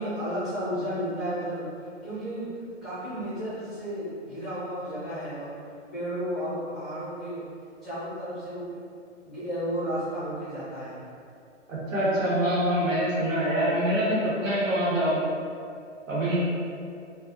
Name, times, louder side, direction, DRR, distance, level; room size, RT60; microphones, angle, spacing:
voice 1, 0.0-1.7 2.0-2.5 2.8-5.5 5.9-7.4 7.8-8.7 9.2-11.0, equal, ahead, -16 dB, 0.5 m, -32 dB
voice 2, 11.7-15.2 16.1-16.4, equal, 80° right, -8 dB, 1.2 m, -25 dB
2.4 x 2.4 x 2.5 m, 2.4 s
hypercardioid pair, 135°, 38 cm